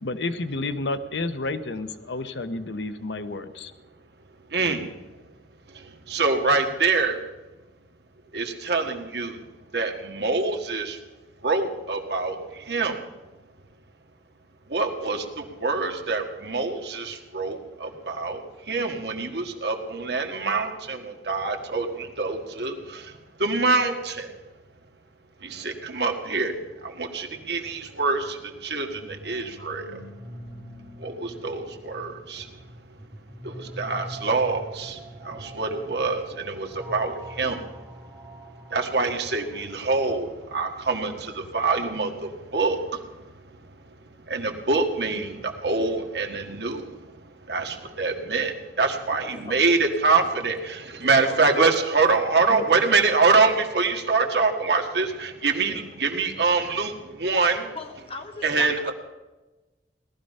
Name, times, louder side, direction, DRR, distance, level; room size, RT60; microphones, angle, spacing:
voice 1, 0.0-3.7, left 2 dB, 85° left, 11 dB, 0.9 m, -30 dB
voice 2, 4.5-4.9 5.7-7.2 8.3-9.4 9.7-11.0 11.4-13.0 14.7-24.3 25.4-30.0 31.0-32.5 33.4-37.9 38.7-43.3 44.3-47.2 47.5-57.7 58.4-58.9, right 4 dB, 70° right, 4 dB, 1.7 m, -25 dB
sound 1, 28.7-40.5, right 1 dB, 15° right, 2.2 m, -44 dB
voice 3, 49.2-49.6 51.0-51.6 52.5-53.0 53.7-53.9 57.7-58.9, left 2 dB, 35° left, 6 dB, 1.4 m, -39 dB
18.0 x 13.0 x 5.4 m, 1.1 s
head